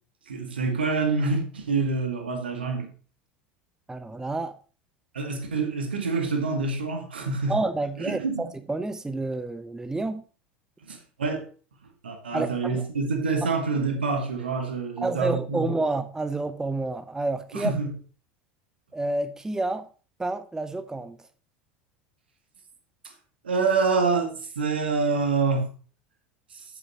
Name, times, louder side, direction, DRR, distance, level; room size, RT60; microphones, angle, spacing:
voice 1, 0.3-2.9 5.1-7.5 8.0-8.5 10.9-11.5 12.0-15.7 17.5-17.9 23.4-25.7 26.5-26.6, right 4 dB, 80° right, 1.9 m, -26 dB
voice 2, 3.9-4.5 7.5-10.2 12.3-12.8 15.0-17.7 18.9-19.9 20.2-21.2, right 2 dB, 10° right, 0.7 m, -29 dB
8.6 x 7.2 x 4.2 m
hypercardioid pair, 75°, 6 cm